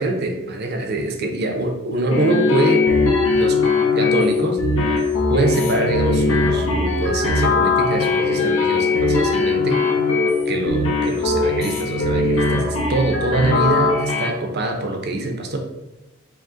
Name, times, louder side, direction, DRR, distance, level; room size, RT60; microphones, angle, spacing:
voice 1, 0.0-2.9 3.3-3.6 3.9-4.6 4.9-9.9 10.5-15.6, right 2 dB, 50° right, 3 dB, 0.6 m, -24 dB
sound 1, 2.1-14.3, left 3 dB, 90° left, 0.9 m, -20 dB
5.0 x 2.1 x 3.7 m, 1.0 s
head